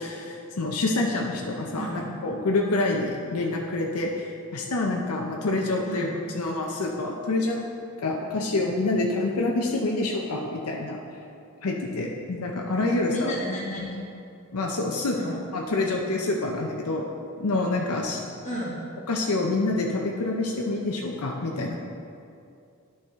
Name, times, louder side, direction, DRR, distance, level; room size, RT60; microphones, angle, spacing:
voice 1, 0.0-4.1 4.5-6.1 6.3-7.7 8.0-11.0 11.6-13.3 14.5-17.0 17.4-18.2 19.1-21.8, left 2 dB, 85° left, 0 dB, 0.7 m, -27 dB
voice 2, 1.7-2.1 5.8-6.1 12.8-14.0 15.1-15.4 18.4-18.8, equal, 35° left, -7 dB, 2.0 m, -33 dB
11.5 x 4.7 x 3.6 m, 2.5 s
head